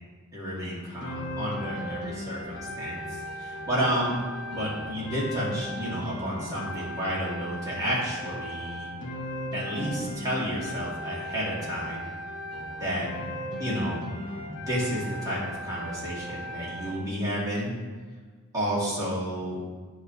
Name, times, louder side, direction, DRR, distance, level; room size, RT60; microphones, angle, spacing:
voice 1, 0.3-4.1 4.5-8.9 9.5-12.1 12.8-13.1 13.6-14.0 14.4-17.7 18.5-19.6, equal, 15° right, -7 dB, 2.0 m, -31 dB
sound 1, 1.0-17.0, equal, 55° left, 1.0 m, -37 dB
8.5 x 3.2 x 5.7 m, 1.5 s
head